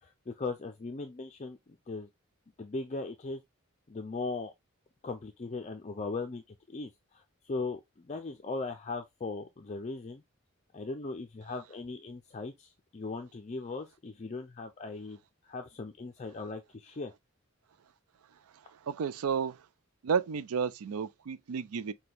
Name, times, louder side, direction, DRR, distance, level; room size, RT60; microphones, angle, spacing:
voice 1, 0.0-1.6 1.9-2.1 2.6-3.4 3.9-4.5 5.0-6.4 6.7-10.2 10.7-15.2 15.4-17.1, left 3 dB, 30° left, 0.4 m, -38 dB
voice 2, 18.9-19.6 20.0-21.9, right 6 dB, 85° right, 0.4 m, -31 dB
6.0 x 2.2 x 3.3 m
head